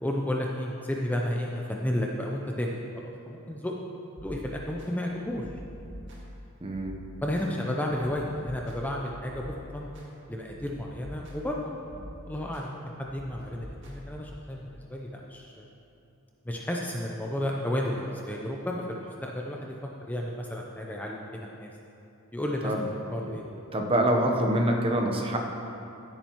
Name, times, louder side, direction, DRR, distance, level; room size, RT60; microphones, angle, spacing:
voice 1, 0.0-2.7 3.2-3.8 4.2-5.4 7.2-9.4 9.7-9.9 10.3-11.8 12.2-15.6 16.4-19.7 20.1-21.7 22.3-22.7 23.1-23.5, left 1 dB, 5° left, -1 dB, 0.5 m, -32 dB
sound 1, 4.2-4.9 5.3-6.4 6.7-7.5 7.9-10.1 10.5-11.5 11.9-12.6 13.1-14.5, left 1 dB, 55° right, 1.9 m, -45 dB
voice 2, 6.6-7.0 22.6-22.9 23.3-23.4 23.7-25.4, right 1 dB, 25° right, 2 dB, 0.9 m, -25 dB
15.0 x 8.7 x 3.0 m, 2.8 s
head